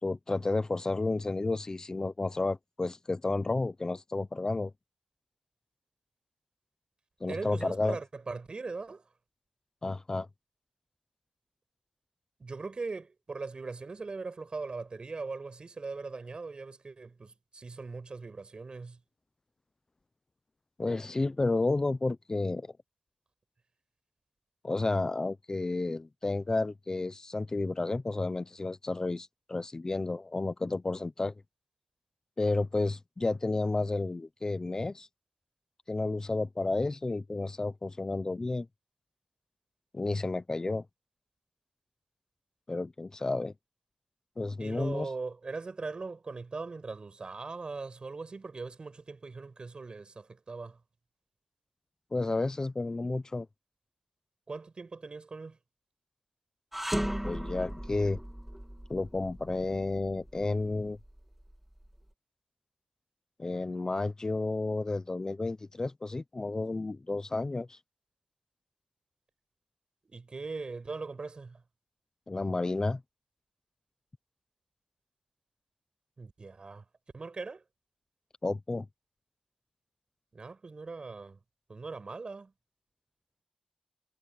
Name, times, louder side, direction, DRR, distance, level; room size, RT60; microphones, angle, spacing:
voice 1, 0.0-4.7 7.2-8.0 9.8-10.3 20.8-22.7 24.6-31.3 32.4-35.1 35.9-38.7 39.9-40.8 42.7-43.5 44.4-45.1 52.1-53.5 57.2-58.2 58.9-61.0 63.4-67.8 72.3-73.0 78.4-78.9, left 2 dB, 30° left, 0.7 m, -31 dB
voice 2, 7.3-9.0 12.4-19.0 44.6-50.8 54.5-55.6 70.1-71.6 76.2-76.8 77.1-77.6 80.3-81.4 81.7-82.5, right 4 dB, 45° right, 5.8 m, -40 dB
sound 1, 56.7-61.9, equal, 5° right, 2.2 m, -37 dB
wide cardioid pair, 85°, 2 cm